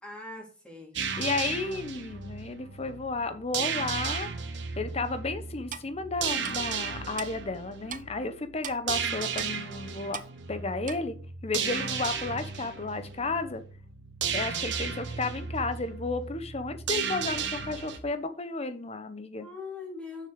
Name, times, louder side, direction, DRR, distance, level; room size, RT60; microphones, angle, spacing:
voice 1, 0.0-1.4 19.4-20.3, left 3 dB, 5° left, -2 dB, 2.9 m, -42 dB
sound 1, 1.0-18.0, right 6 dB, 70° right, 1.2 m, -35 dB
voice 2, 1.2-4.3 4.8-10.2 10.5-11.1 11.4-13.6 14.3-19.5, left 3 dB, 35° left, 10 dB, 1.0 m, -33 dB
Clock, 5.7-5.9 6.4-6.5 7.2-7.3 7.9-8.0 8.6-8.8 9.4-9.5 10.1-10.3 10.9-11.0, right 9 dB, 45° right, 0.6 m, -38 dB
7.1 x 6.2 x 5.2 m, 0.39 s
head